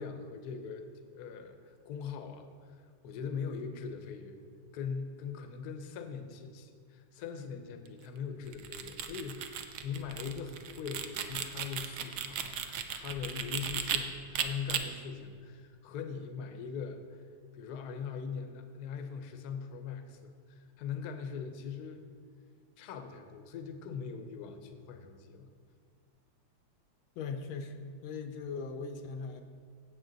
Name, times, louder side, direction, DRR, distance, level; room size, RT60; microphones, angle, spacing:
voice 1, 0.0-4.4 4.7-17.2 17.5-22.0 22.8-25.5, left 6 dB, 60° left, 7 dB, 1.2 m, -41 dB
sound 1, 8.5-14.0 14.3-14.8, right 9 dB, 65° right, 1.1 m, -36 dB
voice 2, 27.2-29.4, left 4 dB, 80° left, 7 dB, 1.6 m, -39 dB
16.0 x 7.2 x 3.9 m, 2.1 s
omnidirectional pair, 2.2 m